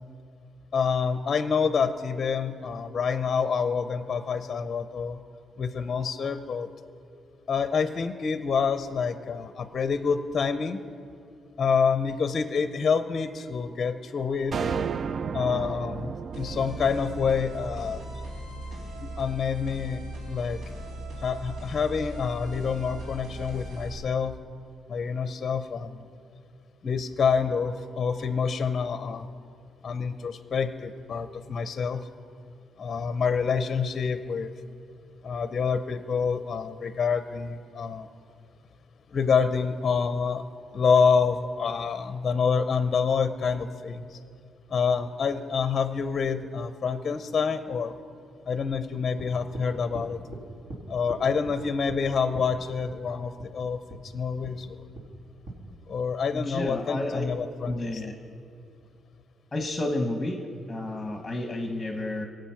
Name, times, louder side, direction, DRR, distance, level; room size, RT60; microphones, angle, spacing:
voice 1, 0.7-5.2 5.6-6.7 7.5-10.8 11.6-14.6 15.3-18.0 19.0-20.0 20.3-20.6 21.2-24.3 24.9-26.1 26.8-29.3 29.8-32.0 32.8-34.5 35.2-38.1 39.1-40.4 40.7-44.2 44.7-47.9 48.5-50.2 50.9-54.8 55.9-58.0, left 5 dB, 35° left, 10 dB, 0.6 m, -27 dB
sound 1, 14.5-18.9, right 6 dB, 40° right, 0.3 m, -34 dB
sound 2, 16.3-23.9, right 1 dB, 90° right, 3.5 m, -38 dB
sound 3, 49.2-49.7 49.9-50.4 50.7-50.8 51.1-51.6 51.9-52.0 52.3-52.5 52.9-53.0 53.4-53.5 53.9-54.0 54.4-54.6 55.0-55.1 55.5-55.6, right 2 dB, 60° right, 2.6 m, -40 dB
voice 2, 56.3-57.2 57.6-58.1 59.5-60.4 60.7-62.2, left 1 dB, 15° left, 3 dB, 1.0 m, -31 dB
22.5 x 7.9 x 5.8 m, 2.4 s
cardioid pair, 145°, 0 cm